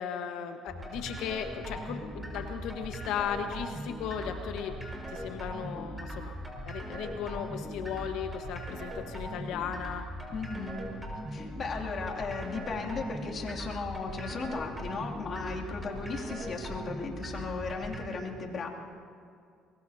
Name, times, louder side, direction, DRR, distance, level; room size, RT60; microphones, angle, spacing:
voice 1, 0.0-4.8 5.1-6.3 6.7-10.0, left 8 dB, 75° left, 6 dB, 1.3 m, -36 dB
sound 1, 0.7-18.0, equal, 10° right, 5.6 m, -40 dB
voice 2, 10.3-10.9 11.3-18.7, left 4 dB, 50° left, -2 dB, 2.7 m, -36 dB
24.0 x 21.0 x 2.8 m, 2.2 s
supercardioid pair, 70°, 0 cm